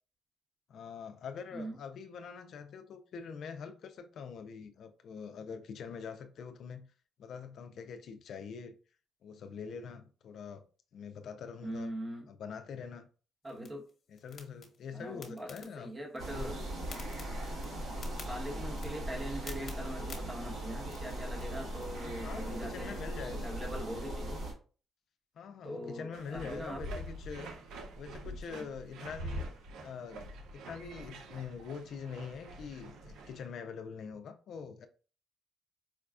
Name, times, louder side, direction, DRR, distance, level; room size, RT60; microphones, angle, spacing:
voice 1, 0.7-6.9 7.2-8.8 9.2-10.6 10.9-11.9 12.3-13.1 14.1-15.9 16.2-16.8 22.2-23.5 25.4-27.5 28.0-29.5 29.8-30.2 30.5-34.9, left 6 dB, 65° left, 0.4 m, -44 dB
voice 2, 11.6-12.3 13.4-13.9 14.9-16.6 18.2-24.4 25.6-26.8 28.2-28.7, equal, 20° right, 1.2 m, -42 dB
sound 1, 13.4-21.9, left 5 dB, 50° left, 1.0 m, -53 dB
sound 2, 16.2-24.5, right 1 dB, 60° right, 1.7 m, -39 dB
sound 3, 26.1-33.5, equal, 85° right, 0.6 m, -45 dB
4.7 x 2.3 x 2.4 m
cardioid pair, 90°, 0 cm